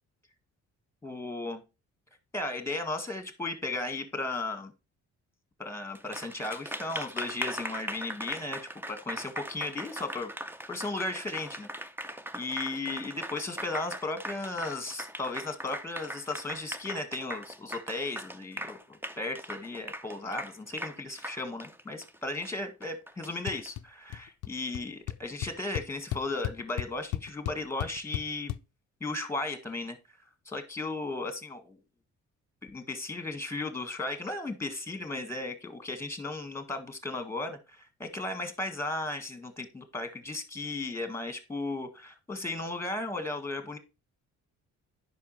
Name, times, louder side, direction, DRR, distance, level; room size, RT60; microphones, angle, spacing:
voice 1, 1.0-1.6 2.3-4.7 5.6-8.6 8.9-10.3 10.7-11.7 12.3-28.6 29.0-30.0 30.4-31.8 32.6-43.8, left 2 dB, 10° left, 8 dB, 1.7 m, -35 dB
Applause, 5.9-23.7, right 1 dB, 5° right, 0.6 m, -40 dB
sound 1, 23.5-23.8 24.1-24.5 24.7-24.8 25.1-28.6, left 14 dB, 80° left, 0.5 m, -34 dB
9.3 x 5.7 x 3.2 m, 0.28 s
cardioid pair, 90°, 30 cm